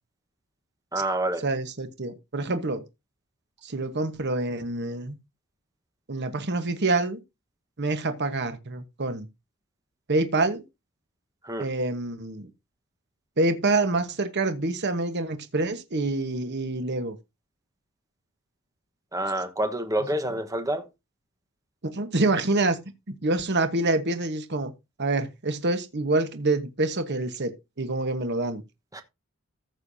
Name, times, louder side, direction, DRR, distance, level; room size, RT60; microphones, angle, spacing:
voice 1, 0.9-1.4 11.4-11.7 19.1-20.8 28.9-29.0, right 1 dB, 15° right, 1.2 m, -27 dB
voice 2, 1.4-2.8 3.6-5.1 6.1-7.2 7.8-9.3 10.1-10.6 11.6-12.5 13.4-17.1 20.2-20.3 21.8-22.8 23.1-24.7 25.0-27.5 27.8-28.6, right 2 dB, 55° right, 1.2 m, -26 dB
14.5 x 6.7 x 2.7 m
head